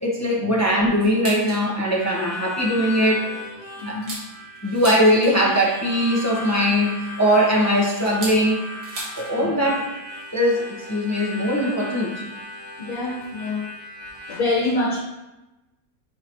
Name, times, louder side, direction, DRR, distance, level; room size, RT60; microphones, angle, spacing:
voice 1, 0.0-3.3 3.9-4.0 4.6-8.6 9.2-9.8 10.3-12.1, equal, 15° left, -3 dB, 0.8 m, -20 dB
sound 1, 1.0-1.7 2.1-2.2 2.6-2.8 3.3-5.6 6.8-9.4 9.6-9.7 10.0-10.3 11.3-11.4 12.3-12.4 13.2-13.4 13.7-13.8 14.0-14.2, right 2 dB, 75° right, 2.1 m, -37 dB
Harmonica, 1.8-14.4, left 2 dB, 30° right, 1.2 m, -37 dB
voice 2, 3.8-4.2 9.4-9.6 12.8-13.7 14.3-15.0, left 2 dB, 65° left, -6 dB, 1.6 m, -26 dB
7.4 x 4.9 x 3.0 m, 1.0 s
omnidirectional pair, 1.7 m